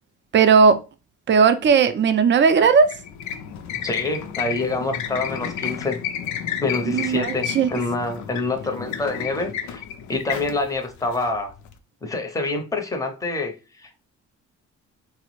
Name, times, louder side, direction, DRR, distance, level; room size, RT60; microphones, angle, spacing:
voice 1, 0.3-0.8 1.3-2.9 6.9-7.7, right 5 dB, 40° right, 0.4 m, -16 dB
sound 1, 2.4-11.7, left 9 dB, 75° left, 0.5 m, -32 dB
voice 2, 3.8-6.0 6.6-11.5 12.0-14.0, left 3 dB, 10° left, 0.6 m, -27 dB
3.3 x 2.0 x 3.0 m
cardioid pair, 90°, 30 cm